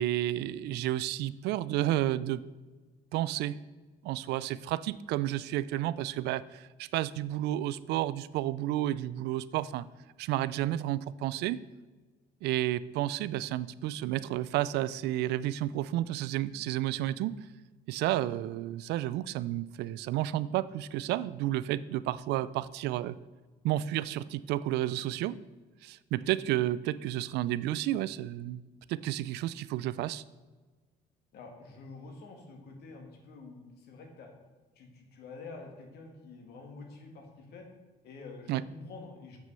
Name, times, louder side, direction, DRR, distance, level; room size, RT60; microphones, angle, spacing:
voice 1, 0.0-2.4 3.1-3.6 4.0-9.8 10.2-11.6 12.4-17.3 17.9-23.1 23.6-25.4 25.8-28.6 28.9-30.2 38.5-38.6, right 14 dB, 80° right, 18 dB, 0.4 m, -31 dB
voice 2, 31.3-34.3 34.8-37.7 38.0-39.4, left 3 dB, 70° left, 2 dB, 2.0 m, -48 dB
7.6 x 6.0 x 5.5 m, 1.3 s
cardioid pair, 110°, 17 cm